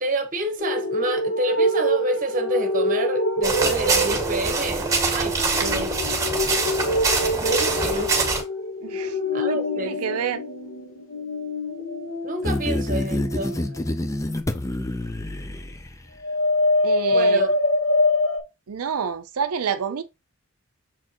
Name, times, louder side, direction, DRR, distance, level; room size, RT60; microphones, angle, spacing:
voice 1, 0.0-6.0 7.4-8.2 9.3-10.0 12.2-13.7 17.1-17.6, right 1 dB, 40° right, 1.2 m, -28 dB
sound 1, 0.6-14.7 16.2-18.4, left 1 dB, 65° left, 1.8 m, -25 dB
sound 2, 3.4-8.4, right 3 dB, 15° right, 1.9 m, -24 dB
voice 2, 8.8-9.2 9.5-9.6 9.9-10.4 16.8-17.5 18.7-20.0, right 6 dB, 85° right, 0.5 m, -28 dB
sound 3, 12.4-16.2, left 1 dB, 15° left, 0.5 m, -27 dB
7.3 x 4.3 x 2.9 m
head